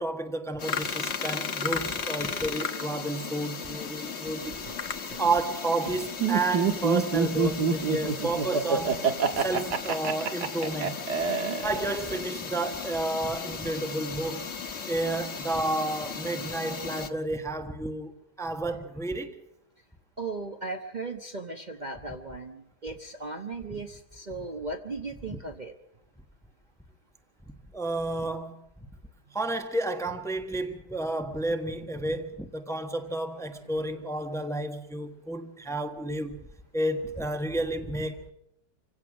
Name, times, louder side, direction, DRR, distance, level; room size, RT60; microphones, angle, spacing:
voice 1, 0.0-4.6 5.2-9.0 9.3-11.0 11.6-14.5 14.9-18.1 18.4-19.3 25.3-25.4 27.7-28.6 29.3-36.4 36.7-38.3, right 2 dB, ahead, 1.2 m, -31 dB
sound 1, 0.6-17.1, left 6 dB, 45° left, 1.4 m, -36 dB
Laughter, 6.2-12.2, right 5 dB, 90° right, 2.1 m, -26 dB
voice 2, 11.3-11.6 20.2-25.7 33.7-33.9, right 3 dB, 30° right, 1.1 m, -37 dB
26.0 x 16.5 x 6.2 m
omnidirectional pair, 1.7 m